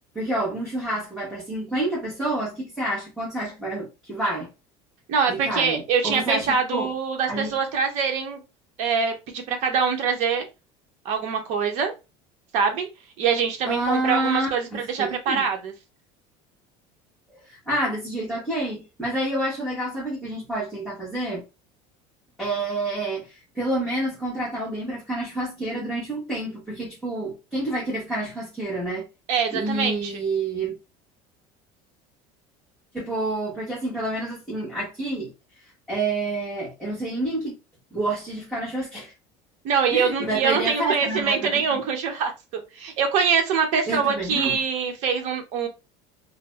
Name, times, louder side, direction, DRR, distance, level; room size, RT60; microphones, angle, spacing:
voice 1, 0.1-4.5 5.3-6.9 7.3-7.5 13.6-15.4 17.4-21.4 22.4-29.1 29.5-30.7 32.9-35.3 35.9-37.6 37.9-39.1 39.9-41.8 43.9-44.6, right 2 dB, ahead, 1.0 m, -28 dB
voice 2, 5.1-8.4 8.8-10.5 11.0-11.9 12.5-12.9 13.2-15.7 29.3-30.1 39.6-45.7, right 6 dB, 50° right, 0.8 m, -24 dB
2.5 x 2.0 x 3.3 m
cardioid pair, 170°, 15 cm